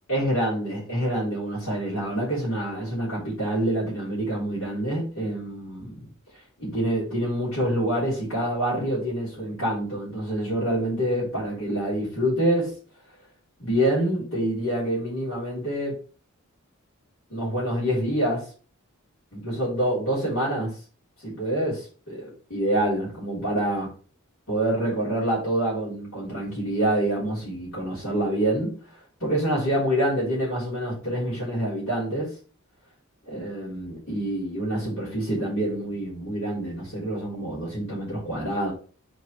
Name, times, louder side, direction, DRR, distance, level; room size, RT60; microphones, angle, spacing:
voice 1, 0.1-6.1 6.6-12.7 13.6-16.0 17.3-18.5 19.3-20.8 21.2-23.9 24.5-28.8 29.2-32.3 33.3-38.7, right 1 dB, 70° left, 3.8 m, -26 dB
7.9 x 4.3 x 3.2 m
head